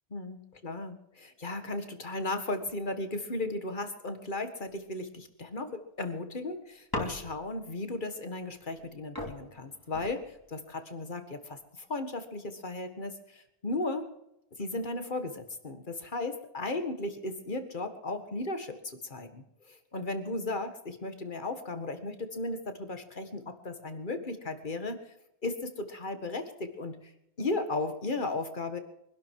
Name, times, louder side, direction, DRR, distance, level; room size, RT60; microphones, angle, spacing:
voice 1, 0.1-14.1 14.6-25.0 25.4-27.0 27.4-28.8, left 2 dB, 50° left, 8 dB, 1.9 m, -35 dB
wood board hit, 6.9-7.7 8.8-8.9 9.2-10.6 11.4-11.8, left 2 dB, 20° left, 2.7 m, -39 dB
24.0 x 12.0 x 4.8 m, 0.83 s
omnidirectional pair, 1.1 m